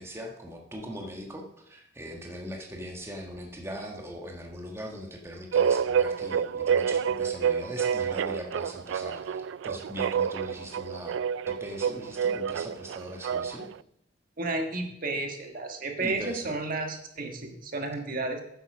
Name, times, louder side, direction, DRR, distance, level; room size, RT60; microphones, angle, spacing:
voice 1, 0.0-11.2 11.5-13.7 16.0-16.5, equal, 15° right, 1 dB, 1.4 m, -40 dB
sound 1, 5.5-13.7, right 7 dB, 80° right, 0.3 m, -28 dB
voice 2, 14.4-18.4, right 2 dB, 50° right, 3 dB, 1.6 m, -32 dB
9.7 x 7.9 x 6.2 m, 0.77 s
head